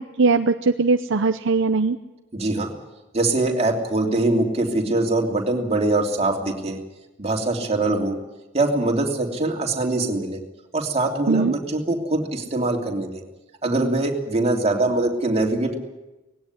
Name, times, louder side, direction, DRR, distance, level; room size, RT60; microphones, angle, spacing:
voice 1, 0.0-2.0 11.3-11.6, right 4 dB, 65° right, 8 dB, 0.7 m, -20 dB
voice 2, 2.3-2.7 3.1-6.8 7.2-8.2 8.5-10.4 10.7-13.2 13.6-15.8, right 2 dB, 30° right, 1 dB, 3.0 m, -23 dB
19.5 x 16.5 x 9.8 m, 1.0 s
head